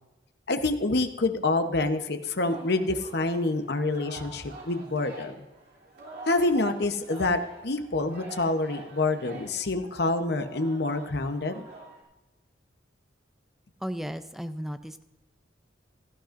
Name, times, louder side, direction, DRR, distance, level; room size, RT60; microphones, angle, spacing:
voice 1, 0.5-5.4 6.3-11.7, left 2 dB, 60° left, 8 dB, 0.9 m, -27 dB
Singing, 2.3-12.0, right 2 dB, 60° right, 3.2 m, -46 dB
voice 2, 13.8-15.0, equal, ahead, 10 dB, 0.5 m, -35 dB
17.0 x 13.0 x 2.6 m, 1.0 s
head